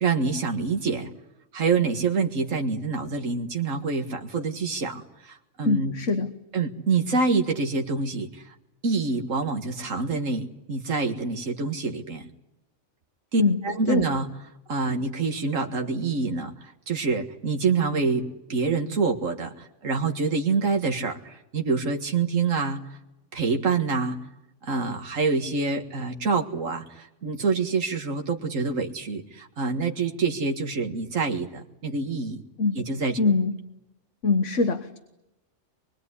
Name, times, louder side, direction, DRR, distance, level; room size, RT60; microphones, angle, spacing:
voice 1, 0.0-1.1 1.5-5.9 6.5-8.6 8.8-12.2 13.3-14.3 14.7-23.0 23.3-24.2 24.6-32.4 32.7-33.2, right 4 dB, 85° right, 3 dB, 2.2 m, -26 dB
voice 2, 5.7-6.3 13.4-13.6 13.9-14.1 32.6-32.8 33.2-33.6 34.2-35.0, left 3 dB, 70° left, 9 dB, 1.7 m, -23 dB
25.5 x 22.5 x 9.8 m, 0.91 s
omnidirectional pair, 1.3 m